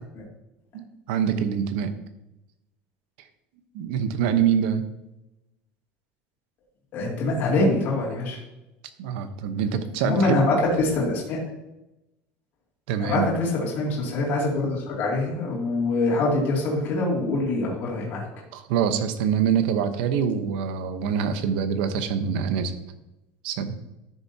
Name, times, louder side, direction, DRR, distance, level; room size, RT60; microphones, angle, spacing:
voice 1, 0.7-1.9 3.7-4.8 9.0-10.5 12.9-13.4 18.5-22.7 23.4-23.8, right 7 dB, 80° right, 9 dB, 1.0 m, -25 dB
voice 2, 6.9-8.4 10.0-11.4 13.0-18.2, left 2 dB, 40° left, -4 dB, 2.7 m, -24 dB
12.0 x 6.9 x 2.8 m, 0.91 s
cardioid pair, 170°, 5 cm